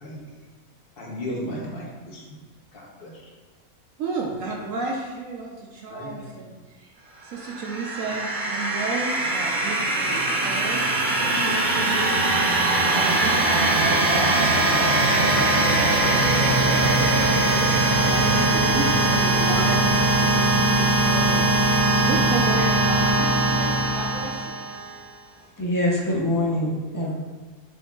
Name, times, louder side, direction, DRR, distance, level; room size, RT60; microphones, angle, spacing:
voice 1, 1.0-2.2 2.7-3.1 5.9-6.4, equal, 45° left, -3 dB, 0.9 m, -35 dB
voice 2, 4.0-6.9 7.2-24.6, right 3 dB, 70° right, -2 dB, 1.0 m, -33 dB
sound 1, 7.4-25.0, right 2 dB, 45° right, 0.7 m, -21 dB
voice 3, 25.6-27.1, left 1 dB, 30° left, -4 dB, 0.4 m, -24 dB
6.3 x 3.6 x 2.3 m, 1.3 s
omnidirectional pair, 1.5 m